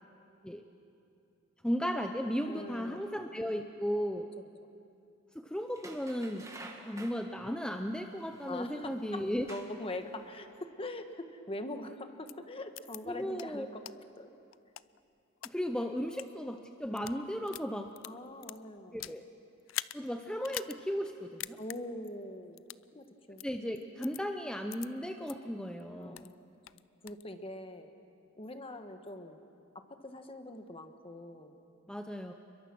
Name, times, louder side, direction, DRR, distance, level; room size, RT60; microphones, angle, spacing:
voice 1, 1.6-4.3 5.3-6.5 6.8-9.5 13.1-13.7 15.4-17.9 18.9-19.2 19.9-21.6 23.4-26.3 31.9-32.3, equal, 5° left, 5 dB, 0.7 m, -35 dB
voice 2, 2.5-3.0 8.5-13.8 14.2-14.3 18.0-19.0 21.6-22.6 22.9-23.4 26.0-26.4 27.0-27.9 28.4-29.4 29.7-31.5, left 1 dB, 30° left, 7 dB, 1.3 m, -43 dB
sound 1, 5.7-7.2 8.4-8.5 9.2-9.9 10.3-10.4, right 2 dB, 15° right, 1.9 m, -49 dB
sound 2, 12.3-12.4 12.8-13.0 13.4-13.5 13.9-14.0 14.5-15.5 16.1-16.3 16.8-17.2 17.5-19.2 19.7-20.0 20.4-20.8 21.1-21.2 21.4-21.8 22.6-22.8 23.4-23.5 24.0-24.2 24.7-24.9 25.3-25.4 25.8-26.3 26.7-27.2, left 14 dB, 80° left, 0.4 m, -42 dB
28.5 x 22.5 x 6.1 m, 2.7 s
head